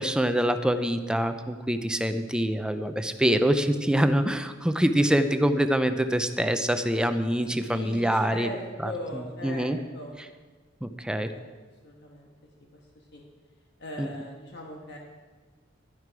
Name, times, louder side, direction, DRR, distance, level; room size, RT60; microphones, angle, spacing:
voice 1, 0.0-8.5 8.8-9.8 10.8-11.3 14.0-14.1, equal, 5° right, 9 dB, 0.5 m, -25 dB
voice 2, 7.5-9.7 9.9-10.1 11.3-11.4 11.8-12.3 13.1-13.2 13.8-15.0, equal, 60° left, 0 dB, 1.4 m, -39 dB
11.5 x 11.0 x 4.8 m, 1.4 s
head